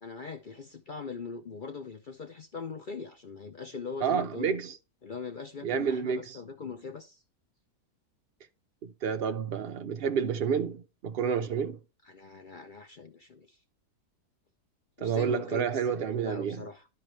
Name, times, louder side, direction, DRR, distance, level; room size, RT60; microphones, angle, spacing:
voice 1, 0.0-4.5 5.0-7.2 12.0-13.6 15.0-16.0 16.2-16.9, left 5 dB, 50° left, 0.6 m, -41 dB
voice 2, 4.0-4.8 5.6-6.4 8.8-11.8 15.0-16.7, right 7 dB, 70° right, 0.5 m, -30 dB
12.0 x 4.6 x 3.2 m
omnidirectional pair, 1.6 m